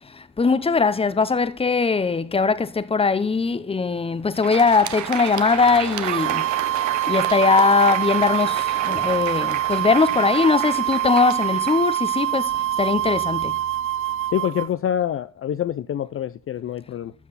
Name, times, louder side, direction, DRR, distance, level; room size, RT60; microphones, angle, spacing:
voice 1, 0.0-6.5 7.0-13.6, left 4 dB, 20° left, 0.8 m, -20 dB
Crowd, 4.2-12.7, right 11 dB, 70° right, 0.9 m, -31 dB
sound 1, 6.0-14.7, right 13 dB, 45° right, 0.4 m, -25 dB
voice 2, 14.3-17.1, left 10 dB, 45° left, 0.5 m, -26 dB
13.0 x 6.0 x 4.1 m
cardioid pair, 90°, 30 cm